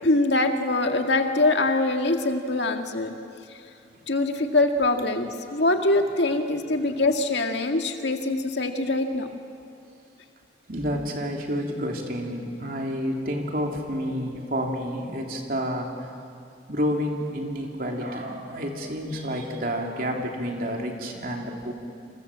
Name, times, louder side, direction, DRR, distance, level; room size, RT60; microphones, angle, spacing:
voice 1, 0.0-3.1 4.1-9.3, left 2 dB, 70° left, 4 dB, 2.0 m, -23 dB
voice 2, 10.7-16.1 16.7-21.7, equal, 50° right, 1 dB, 3.4 m, -29 dB
29.0 x 27.0 x 7.5 m, 2.5 s
head